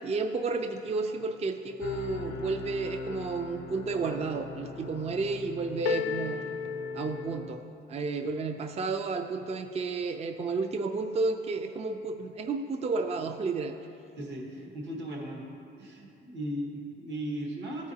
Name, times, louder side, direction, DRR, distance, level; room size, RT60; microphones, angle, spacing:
voice 1, 0.0-6.4 6.9-7.6 7.9-13.8, right 3 dB, 30° right, 7 dB, 0.4 m, -31 dB
sound 1, 1.8-7.6, left 6 dB, 80° left, 0.6 m, -37 dB
voice 2, 14.1-15.4 15.8-17.9, right 1 dB, 65° right, -1 dB, 1.6 m, -37 dB
14.0 x 4.8 x 2.8 m, 2.6 s
cardioid pair, 90°, 20 cm